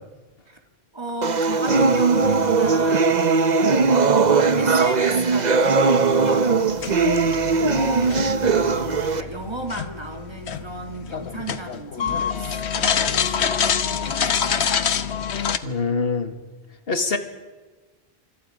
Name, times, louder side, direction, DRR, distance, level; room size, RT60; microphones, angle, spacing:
voice 1, 0.9-3.3 3.9-14.8, right 2 dB, 25° right, 4 dB, 2.4 m, -35 dB
sound 1, 1.2-9.2, right 4 dB, 45° right, 1.0 m, -19 dB
sound 2, 6.7-15.6, left 7 dB, 85° left, 1.2 m, -26 dB
voice 2, 15.6-16.4 16.9-17.2, left 4 dB, 65° left, 7 dB, 2.0 m, -24 dB
28.5 x 26.5 x 5.1 m, 1.2 s
omnidirectional pair, 1.1 m